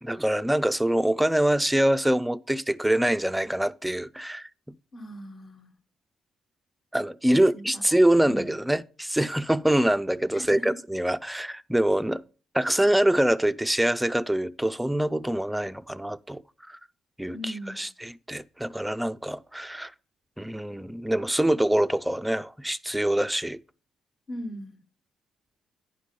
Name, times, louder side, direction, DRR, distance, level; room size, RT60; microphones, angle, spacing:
voice 1, 0.0-4.5 6.9-12.2 12.5-16.4 16.7-16.8 17.2-19.9 20.4-23.6, right 1 dB, 5° right, 0.4 m, -25 dB
voice 2, 4.9-5.7 7.3-7.8 8.2-8.5 10.3-10.8 17.3-17.8 24.3-24.8, equal, 45° left, 1.3 m, -38 dB
9.8 x 5.1 x 5.2 m
cardioid pair, 90°, 0 cm